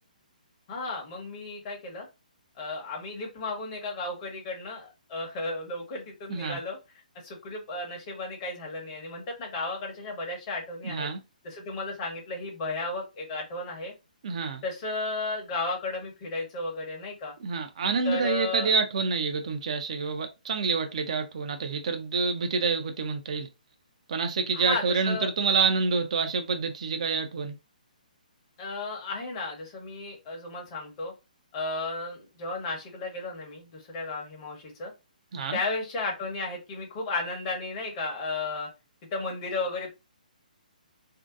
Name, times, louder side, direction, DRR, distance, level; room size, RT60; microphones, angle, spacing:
voice 1, 0.7-2.1 2.5-6.8 7.2-11.1 11.4-13.9 14.6-17.3 18.0-18.7 24.5-25.3 28.6-31.1 31.5-34.9 35.5-38.7 39.1-39.9, left 3 dB, 30° left, 0.9 m, -34 dB
voice 2, 10.8-11.2 14.2-14.6 17.4-23.5 24.1-27.5 35.3-35.6, right 4 dB, 50° right, 0.5 m, -27 dB
2.6 x 2.2 x 2.4 m
figure-of-eight pair, 130°, 5 cm